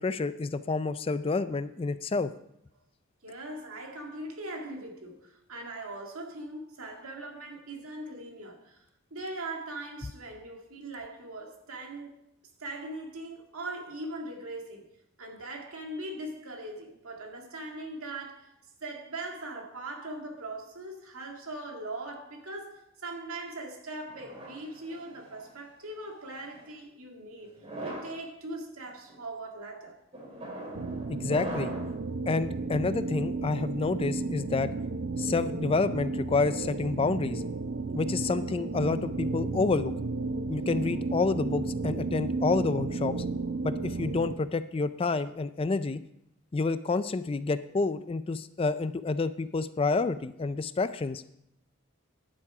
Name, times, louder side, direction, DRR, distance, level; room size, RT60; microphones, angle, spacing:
voice 1, 0.0-2.3 31.1-31.7 32.3-34.7 35.2-37.4 37.9-39.9 40.5-43.2 43.6-46.0 46.5-51.2, left 3 dB, 25° left, 0.3 m, -29 dB
voice 2, 3.2-12.2 12.6-14.9 15.2-18.5 18.8-30.0 35.2-35.3 38.1-38.2, right 2 dB, 85° right, 1.9 m, -40 dB
sound 1, 24.1-25.5 26.3-26.7 27.5-28.2 28.9-29.2 30.1-32.0, right 1 dB, 30° right, 2.6 m, -41 dB
sound 2, 30.7-44.4, right 3 dB, 55° right, 0.5 m, -33 dB
10.0 x 8.3 x 4.9 m
head